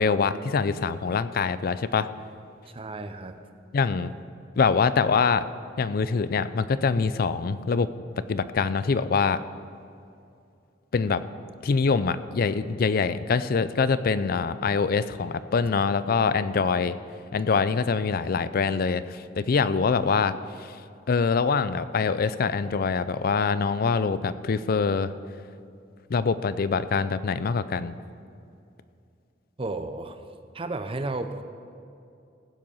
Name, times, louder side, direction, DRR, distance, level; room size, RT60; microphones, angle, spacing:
voice 1, 0.0-2.1 3.7-4.1 4.6-5.5 5.8-7.9 8.2-9.4 10.9-11.2 11.6-17.0 17.3-20.8 21.1-25.1 26.1-28.0, left 5 dB, 50° left, 14 dB, 0.4 m, -24 dB
voice 2, 2.6-3.4 29.6-30.2 30.5-31.4, right 2 dB, 30° right, 9 dB, 0.6 m, -33 dB
15.5 x 7.7 x 5.5 m, 2.5 s
head